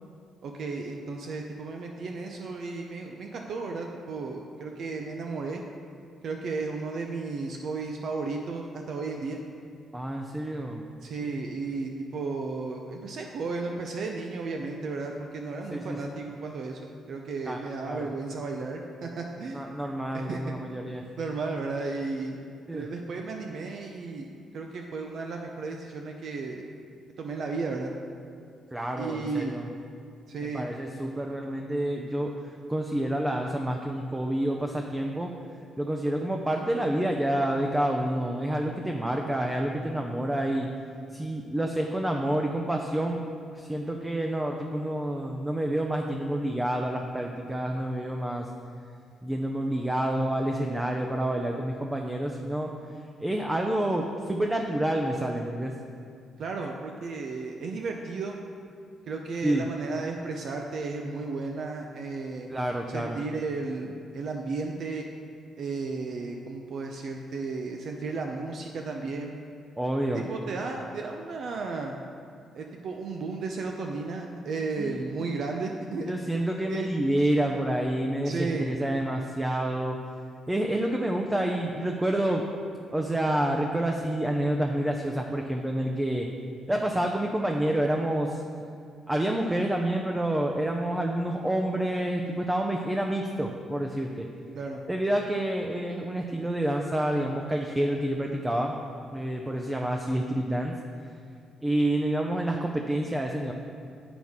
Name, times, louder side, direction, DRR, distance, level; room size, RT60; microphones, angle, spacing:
voice 1, 0.4-5.6 6.2-9.4 11.0-19.7 20.1-20.4 21.2-22.4 22.7-26.7 27.2-27.9 29.0-29.6 30.3-30.7 56.4-58.4 59.1-62.5 62.9-65.0 65.6-69.3 70.1-72.0 72.5-76.1 76.7-76.9 78.2-78.7 94.6-94.8, right 4 dB, 60° right, 2 dB, 0.5 m, -34 dB
voice 2, 9.9-10.8 15.7-16.0 17.5-18.1 19.5-21.1 22.7-22.9 28.7-29.7 30.4-35.3 35.8-40.7 41.1-43.2 43.5-48.5 49.2-52.7 53.2-55.7 59.4-59.7 62.5-63.2 69.8-70.3 74.8-75.0 76.0-80.0 80.5-82.4 82.9-86.3 86.7-88.4 89.1-94.3 94.9-98.8 99.1-100.8 101.6-103.5, right 1 dB, 10° right, 2 dB, 0.5 m, -28 dB
7.9 x 5.9 x 3.6 m, 2.3 s
cardioid pair, 90°, 0 cm